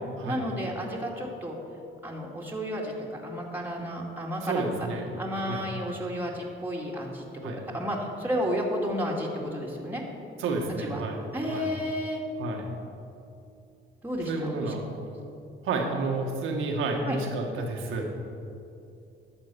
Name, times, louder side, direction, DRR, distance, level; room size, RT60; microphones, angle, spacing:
voice 1, 0.2-1.6 2.0-4.9 5.2-10.0 10.8-11.0 11.3-12.2 14.0-14.7 17.0-17.2, equal, 10° right, -2 dB, 2.2 m, -32 dB
voice 2, 4.4-5.1 5.4-5.6 7.4-7.6 10.4-11.2 11.5-11.7 12.4-12.6 14.3-14.8 15.6-18.1, right 3 dB, 85° right, 2 dB, 1.8 m, -30 dB
11.5 x 6.9 x 7.0 m, 2.6 s
cardioid pair, 90°, 20 cm